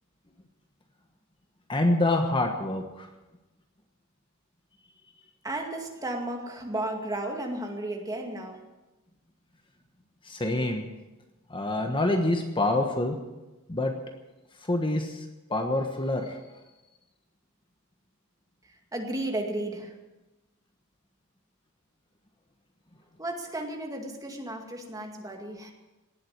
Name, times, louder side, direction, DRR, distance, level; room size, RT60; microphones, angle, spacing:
voice 1, 1.7-3.1 10.2-10.9 11.5-13.2 13.7-13.9 14.6-15.2 15.5-16.4, left 2 dB, 25° left, 4 dB, 1.3 m, -26 dB
voice 2, 5.4-8.6 18.6-20.0 23.2-25.7, right 1 dB, 15° right, 2 dB, 2.2 m, -34 dB
18.5 x 7.8 x 9.5 m, 1.1 s
head